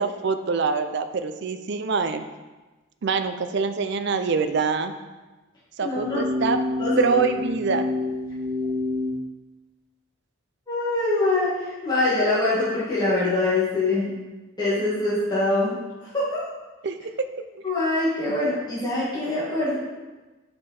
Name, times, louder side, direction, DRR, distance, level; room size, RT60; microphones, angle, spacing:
voice 1, 0.0-2.2 3.0-4.9 5.8-6.6 7.0-7.9 16.8-17.3 18.3-18.4, right 4 dB, 55° right, 9 dB, 0.5 m, -25 dB
voice 2, 5.8-6.2 6.8-7.2 10.7-14.1 14.6-15.7 16.1-16.4 17.6-19.8, left 2 dB, 20° left, -10 dB, 2.0 m, -24 dB
sound 1, 5.9-9.2, left 2 dB, 75° right, 1.4 m, -28 dB
6.6 x 5.2 x 4.3 m, 1.2 s
head